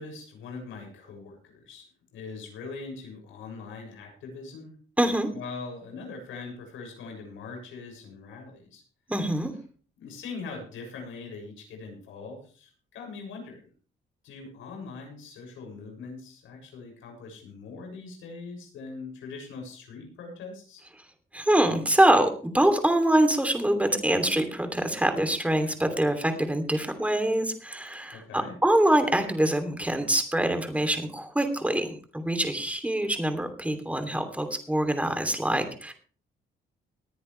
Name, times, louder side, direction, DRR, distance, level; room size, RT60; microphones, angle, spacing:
voice 1, 0.0-1.9 2.1-4.7 5.3-8.8 10.0-13.6 14.2-20.8 28.1-28.5, left 4 dB, 85° left, 2 dB, 6.7 m, -41 dB
voice 2, 5.0-5.3 9.1-9.5 21.3-35.9, right 1 dB, 5° right, 7 dB, 2.9 m, -24 dB
19.5 x 10.0 x 3.3 m, 0.40 s
cardioid pair, 90°, 20 cm